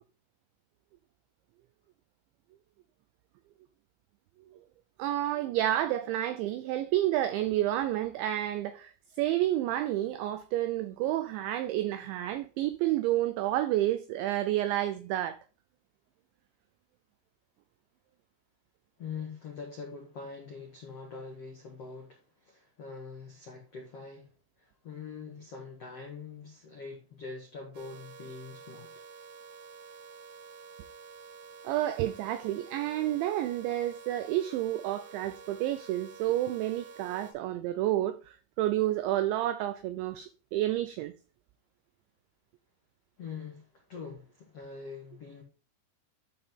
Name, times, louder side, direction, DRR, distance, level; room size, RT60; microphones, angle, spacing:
voice 1, 5.0-15.4 31.6-41.1, right 13 dB, 90° right, 2.6 m, -30 dB
voice 2, 19.0-24.3 24.6-29.0 43.2-45.4, left 5 dB, 70° left, 1.4 m, -44 dB
sound 1, 27.7-37.3, right 5 dB, 70° right, 3.8 m, -49 dB
11.5 x 5.5 x 3.8 m
omnidirectional pair, 6.0 m